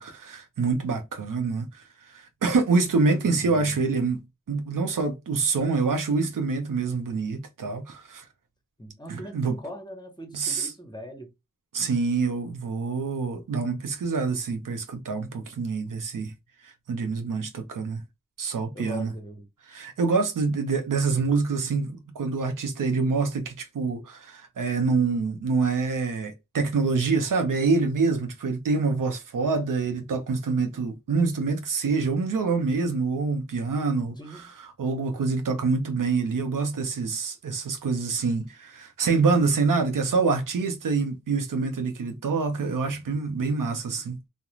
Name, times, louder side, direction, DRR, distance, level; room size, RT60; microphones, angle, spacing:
voice 1, 0.0-4.2 4.5-8.2 9.1-9.6 10.3-10.7 11.7-16.3 16.6-18.0 18.4-19.1 19.7-44.2, right 4 dB, 85° right, 0.6 m, -26 dB
voice 2, 3.2-3.8 8.8-11.3 18.7-19.4 34.2-34.5, equal, 15° left, 0.9 m, -41 dB
2.4 x 2.1 x 3.0 m
cardioid pair, 40°, 31 cm